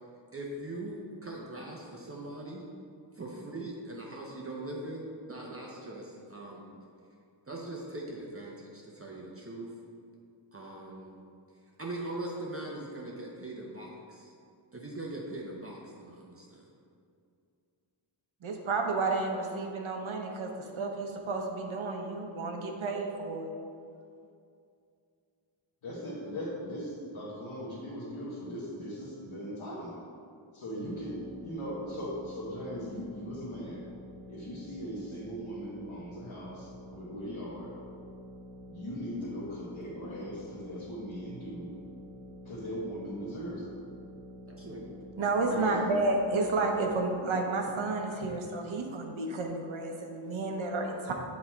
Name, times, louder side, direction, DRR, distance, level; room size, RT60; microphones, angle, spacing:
voice 1, 0.3-2.7 3.1-6.7 7.5-9.7 10.5-11.2 11.8-14.3 14.7-16.7 44.5-44.9, right 2 dB, 30° right, -3 dB, 0.7 m, -41 dB
voice 2, 18.4-23.5 45.2-51.1, right 3 dB, 75° right, 2 dB, 1.0 m, -31 dB
voice 3, 25.8-30.0 30.5-33.8 34.3-37.7 38.7-41.7 42.4-43.7 45.4-45.9, equal, 80° left, -8 dB, 1.4 m, -39 dB
sound 1, 30.8-46.8, left 1 dB, 45° right, 1.3 m, -48 dB
8.2 x 4.2 x 4.4 m, 2.5 s
wide cardioid pair, 150°, 48 cm